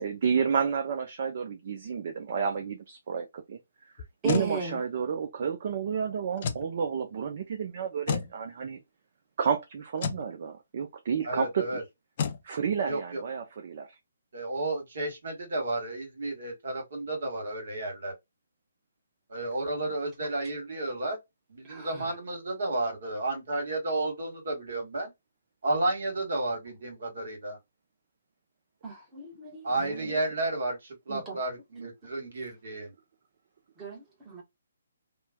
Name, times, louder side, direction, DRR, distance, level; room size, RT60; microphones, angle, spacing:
voice 1, 0.0-3.6 4.2-8.8 9.4-11.8 12.4-13.9 29.8-30.1, right 6 dB, 50° right, 0.5 m, -31 dB
sound 1, 4.0-4.5 6.4-6.7 8.1-8.3 10.0-10.3 12.2-12.4, left 6 dB, 45° left, 0.5 m, -30 dB
voice 2, 4.2-4.8 21.6-22.1 28.8-29.7 30.1-30.2 31.1-31.4 31.7-31.9 33.8-34.4, right 3 dB, 15° right, 1.0 m, -37 dB
voice 3, 11.2-11.8 12.8-13.2 14.3-18.1 19.3-21.2 21.5-25.1 25.6-27.6 29.6-32.9, right 2 dB, 70° right, 1.5 m, -32 dB
3.0 x 2.1 x 2.2 m
hypercardioid pair, 150°, 0 cm